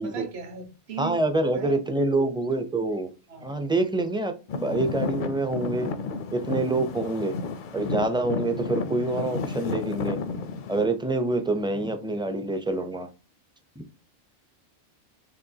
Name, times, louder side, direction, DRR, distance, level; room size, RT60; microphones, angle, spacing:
voice 1, 0.0-1.3 1.5-1.8 3.3-3.5, right 5 dB, 65° right, 1.2 m, -37 dB
voice 2, 1.0-3.1 3.4-5.9 6.3-7.3 7.7-10.2 10.7-13.1, right 2 dB, 5° right, 0.3 m, -26 dB
Traffic noise roadway noise / Engine, 4.5-10.9, left 4 dB, 60° left, 0.6 m, -32 dB
5.0 x 3.5 x 2.8 m
omnidirectional pair, 1.2 m